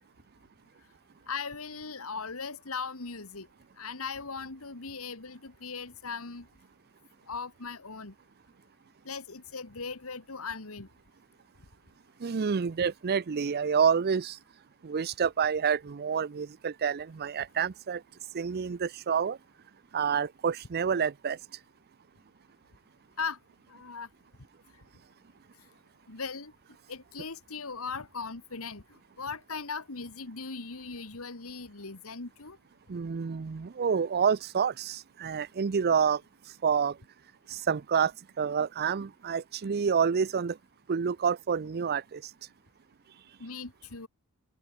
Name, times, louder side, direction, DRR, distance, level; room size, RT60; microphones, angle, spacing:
voice 1, 1.3-3.5 3.8-6.5 7.3-8.1 9.1-10.9 23.2-23.4 23.7-24.1 26.1-26.5 26.9-28.8 29.2-32.6 43.4-44.1, left 5 dB, 70° left, 2.0 m, -38 dB
voice 2, 12.2-14.4 14.8-18.0 18.3-19.4 19.9-21.4 32.9-36.2 36.6-37.0 37.5-38.1 38.4-40.6 40.9-42.3, right 6 dB, 45° right, 0.5 m, -28 dB
open air
head